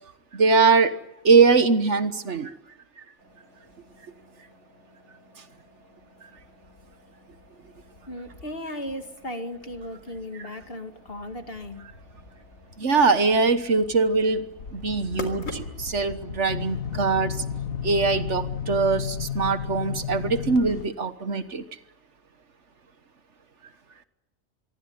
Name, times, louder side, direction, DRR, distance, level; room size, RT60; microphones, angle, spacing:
voice 1, 0.3-0.9 1.2-2.5 10.4-10.5 12.8-17.4 17.8-21.6, right 4 dB, 60° right, 11 dB, 1.6 m, -22 dB
sound 1, 3.2-16.0, left 2 dB, 65° left, 4.0 m, -46 dB
voice 2, 8.1-11.8, left 1 dB, 45° left, 7 dB, 2.5 m, -36 dB
sound 2, 14.6-20.9, left 7 dB, 90° left, 1.9 m, -33 dB
26.0 x 23.0 x 9.7 m, 0.86 s
omnidirectional pair, 1.4 m